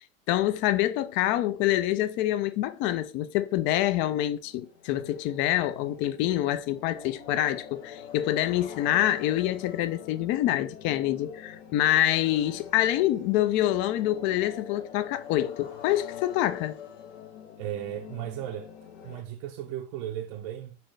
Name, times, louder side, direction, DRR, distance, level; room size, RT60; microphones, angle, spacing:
voice 1, 0.3-16.8, left 13 dB, 40° left, 0.4 m, -26 dB
sound 1, 4.2-19.2, left 8 dB, 80° left, 1.0 m, -45 dB
voice 2, 17.6-18.7 19.0-20.8, right 11 dB, 50° right, 0.5 m, -35 dB
4.3 x 3.8 x 3.2 m
supercardioid pair, 130°, 32 cm